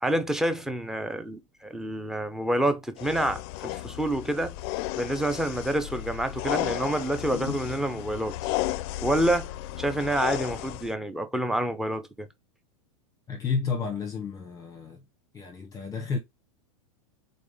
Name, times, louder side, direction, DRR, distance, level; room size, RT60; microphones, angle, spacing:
voice 1, 0.0-4.6 5.0-8.3 9.0-9.5 9.8-12.3, right 1 dB, 5° right, 0.7 m, -28 dB
sound 1, 3.0-10.9, left 16 dB, 50° left, 0.4 m, -34 dB
voice 2, 13.3-15.0 15.3-16.2, left 5 dB, 20° left, 0.9 m, -31 dB
4.0 x 3.7 x 3.5 m
hypercardioid pair, 125°, 17 cm